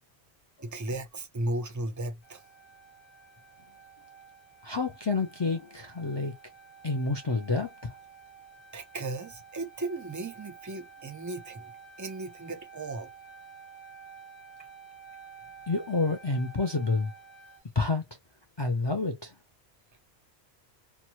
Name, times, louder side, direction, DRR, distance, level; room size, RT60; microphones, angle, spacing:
voice 1, 0.6-2.4 8.7-11.7 12.0-13.1, right 2 dB, 25° right, 0.4 m, -35 dB
sound 1, 2.2-17.6, right 5 dB, 75° left, 1.1 m, -51 dB
voice 2, 4.6-6.3 6.8-7.9 15.7-17.1 17.7-18.0 18.6-19.3, left 3 dB, 45° left, 0.3 m, -28 dB
2.9 x 2.2 x 2.8 m
omnidirectional pair, 1.1 m